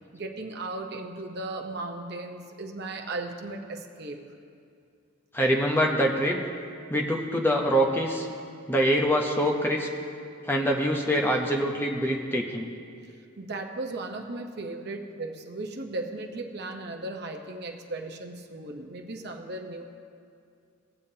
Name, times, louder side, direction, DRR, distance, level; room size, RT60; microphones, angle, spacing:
voice 1, 0.1-4.2 13.4-19.8, right 2 dB, 50° right, 3 dB, 0.8 m, -36 dB
voice 2, 5.3-6.4 6.9-8.3 8.7-9.9 10.5-12.7, equal, 10° left, 0 dB, 0.7 m, -24 dB
19.0 x 7.1 x 2.8 m, 2.4 s
head